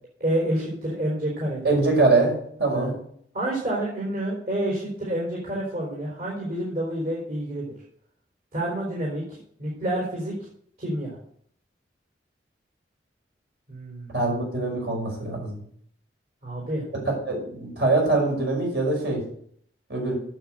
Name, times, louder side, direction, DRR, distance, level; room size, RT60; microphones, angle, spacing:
voice 1, 0.2-1.7 2.7-2.9 3.3-7.7 8.5-10.3 10.8-11.2 13.7-14.1 16.4-16.8, right 1 dB, 55° right, -5 dB, 4.2 m, -28 dB
voice 2, 1.6-2.3 2.6-2.9 14.1-15.5 17.0-19.2 19.9-20.1, right 3 dB, 70° right, -1 dB, 5.6 m, -23 dB
9.2 x 7.6 x 7.9 m, 0.62 s
head